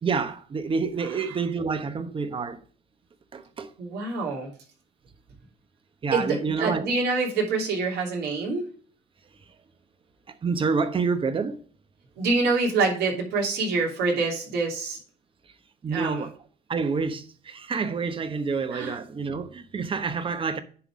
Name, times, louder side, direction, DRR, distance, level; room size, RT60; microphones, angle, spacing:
voice 1, 0.0-2.6 3.3-3.7 6.0-6.9 10.4-11.6 15.8-16.3 16.7-20.6, right 5 dB, 30° right, 1.0 m, -28 dB
voice 2, 3.8-4.5 6.1-8.6 12.2-15.0 15.9-16.2 18.7-19.0, right 3 dB, 75° right, 3.0 m, -26 dB
10.0 x 4.0 x 4.8 m
cardioid pair, 110°, 17 cm